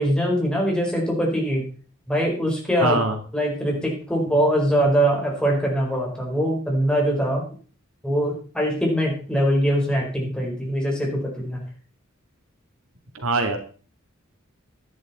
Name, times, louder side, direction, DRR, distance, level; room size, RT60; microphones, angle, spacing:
voice 1, 0.0-1.6 2.1-3.0 3.3-7.5 8.0-11.6, equal, 5° left, -2 dB, 4.6 m, -22 dB
voice 2, 2.8-3.2 13.1-13.6, right 3 dB, 85° right, 5 dB, 2.3 m, -22 dB
11.5 x 11.0 x 4.3 m, 0.40 s
head